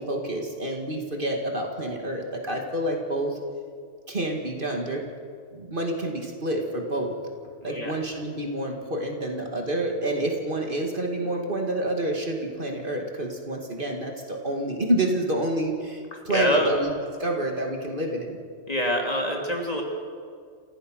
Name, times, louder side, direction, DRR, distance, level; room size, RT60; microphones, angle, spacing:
voice 1, 0.0-3.4 4.1-5.1 5.5-7.2 7.6-16.9 17.2-18.4, right 1 dB, 45° right, 2 dB, 2.3 m, -28 dB
voice 2, 7.6-7.9 16.1-16.7 18.7-19.8, equal, 30° left, 0 dB, 3.0 m, -26 dB
28.5 x 15.5 x 6.4 m, 2.2 s
omnidirectional pair, 1.2 m